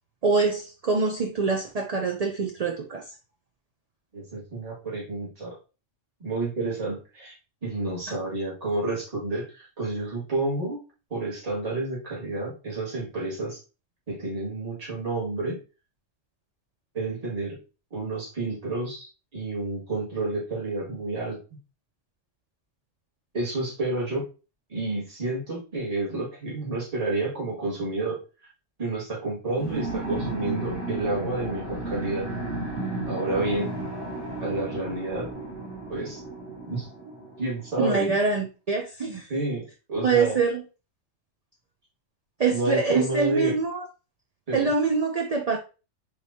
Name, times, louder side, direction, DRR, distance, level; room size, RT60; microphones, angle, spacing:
voice 1, 0.2-3.0 37.8-39.3 40.0-40.6 42.4-43.8 44.5-45.6, right 4 dB, 45° right, 2 dB, 0.5 m, -24 dB
voice 2, 4.1-5.6 6.2-7.3 7.6-10.8 11.1-13.6 14.1-15.6 16.9-17.6 17.9-21.4 23.3-24.2 24.7-28.2 28.8-32.3 33.1-33.7 34.4-35.3 35.9-36.2 36.7-36.9 37.4-38.1 39.3-40.4 42.5-43.5 44.5-44.7, right 2 dB, 30° right, -6 dB, 2.0 m, -30 dB
sound 1, 29.6-37.7, right 2 dB, 70° right, 1.9 m, -34 dB
4.8 x 3.3 x 2.7 m, 0.32 s
omnidirectional pair, 1.3 m